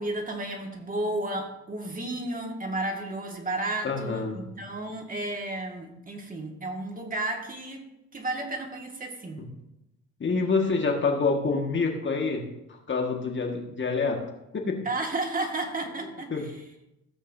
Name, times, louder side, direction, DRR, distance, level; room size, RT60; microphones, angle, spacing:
voice 1, 0.0-7.9 8.1-9.5 14.8-16.6, right 2 dB, 30° right, 2 dB, 2.0 m, -32 dB
voice 2, 3.8-4.4 10.2-12.4 12.9-14.2 14.5-14.8 16.3-16.4, left 4 dB, 40° left, 2 dB, 1.8 m, -26 dB
15.5 x 8.1 x 2.7 m, 0.89 s
cardioid pair, 90°, 30 cm